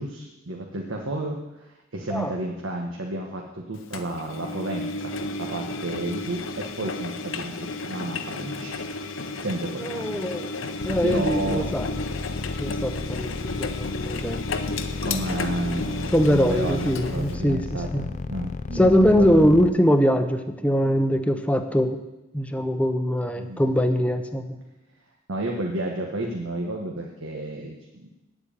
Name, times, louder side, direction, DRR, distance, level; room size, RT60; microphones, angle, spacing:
voice 1, 0.0-8.8 9.1-11.7 15.0-19.4 23.4-23.6 25.3-28.1, right 1 dB, 80° right, 0 dB, 1.4 m, -32 dB
Engine, 3.9-17.3, left 3 dB, 80° left, 0.9 m, -33 dB
voice 2, 9.8-10.5 10.8-11.9 12.6-14.4 16.1-18.1 18.7-22.0 22.3-24.6, equal, 5° left, 6 dB, 0.8 m, -22 dB
sound 1, 10.8-19.7, left 4 dB, 35° left, 0.3 m, -32 dB
9.6 x 7.8 x 8.6 m, 1.0 s
head